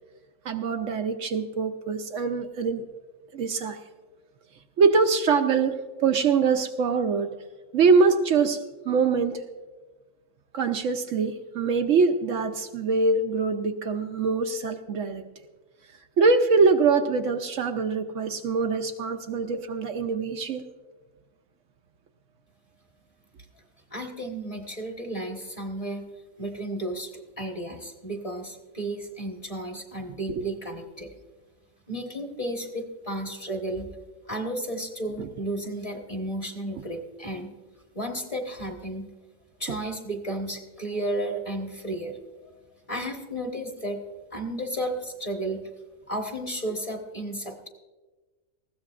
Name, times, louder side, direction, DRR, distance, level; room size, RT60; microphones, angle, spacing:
voice 1, 0.4-2.8 3.3-3.8 4.8-5.7 6.0-7.3 7.7-9.4 10.5-15.2 16.2-20.6 30.3-30.4 35.2-35.3, right 4 dB, 65° right, 6 dB, 1.0 m, -23 dB
voice 2, 23.9-26.1 26.4-31.1 31.9-33.9 34.3-37.5 37.9-39.1 39.6-42.5 42.9-44.0 44.3-45.7 46.1-47.7, right 1 dB, 25° left, 2 dB, 1.3 m, -33 dB
19.5 x 15.0 x 2.4 m, 1.3 s
omnidirectional pair, 1.5 m